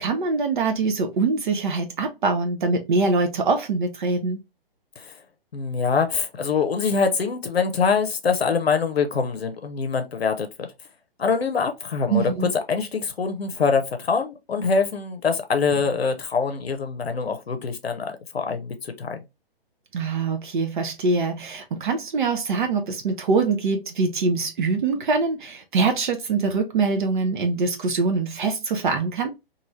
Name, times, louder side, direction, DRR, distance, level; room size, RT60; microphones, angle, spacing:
voice 1, 0.0-4.4 12.1-12.5 19.9-29.3, right 4 dB, 55° right, 0.6 m, -23 dB
voice 2, 5.5-10.7 11.2-12.2 12.7-19.2, left 5 dB, 90° left, 0.6 m, -24 dB
3.1 x 2.6 x 2.5 m
figure-of-eight pair, 135°, 30 cm